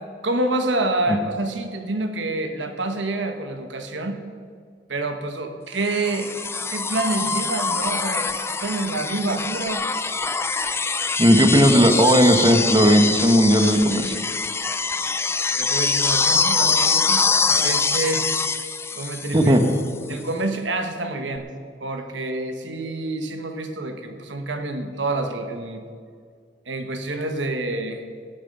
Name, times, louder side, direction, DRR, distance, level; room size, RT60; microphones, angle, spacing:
voice 1, 0.2-4.2 4.9-9.8 15.6-17.2 17.6-18.4 18.9-19.6 20.1-21.5 21.8-25.8 26.7-28.0, right 2 dB, 80° right, 6 dB, 1.2 m, -27 dB
sound 1, 5.9-19.9 21.4-21.5, left 4 dB, 15° left, 0.4 m, -24 dB
voice 2, 11.2-14.1 19.3-19.6, equal, 25° right, 5 dB, 1.1 m, -16 dB
19.0 x 7.3 x 5.4 m, 2.1 s
head